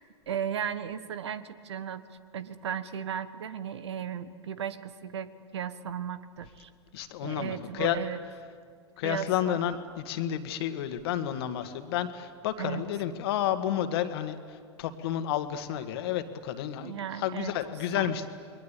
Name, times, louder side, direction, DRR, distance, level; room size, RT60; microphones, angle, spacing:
voice 1, 0.3-2.1 2.3-6.7 7.2-8.2 9.0-9.6 12.6-12.8 16.8-17.5 17.9-18.1, right 8 dB, 75° right, 14 dB, 1.4 m, -35 dB
voice 2, 6.9-8.0 9.0-18.3, left 11 dB, 60° left, 9 dB, 1.9 m, -31 dB
29.0 x 22.0 x 8.4 m, 2.1 s
hypercardioid pair, 95°, 14 cm